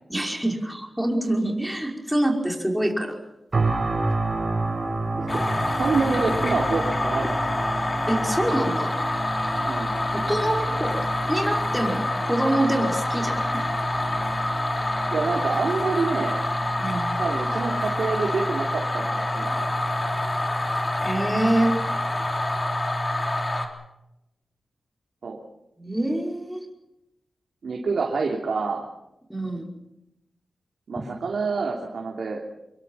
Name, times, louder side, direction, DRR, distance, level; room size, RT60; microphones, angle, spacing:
voice 1, 0.1-3.1 8.1-8.9 10.1-10.9 11.3-13.5 13.8-14.0 16.8-17.1 21.0-21.8 25.8-26.7 29.3-29.6 31.0-31.1, right 1 dB, 5° right, 1 dB, 5.3 m, -25 dB
sound 1, 3.5-18.5 19.0-19.2, right 2 dB, 45° right, 4.8 m, -32 dB
sound 2, 5.3-23.7, left 1 dB, 30° left, 3.6 m, -26 dB
voice 2, 5.8-7.5 9.6-10.0 15.1-16.4 17.2-19.7 25.2-25.4 27.6-28.9 30.9-32.4, right 4 dB, 75° right, 0 dB, 3.1 m, -27 dB
26.0 x 22.5 x 5.7 m, 0.89 s
wide cardioid pair, 90°, 0 cm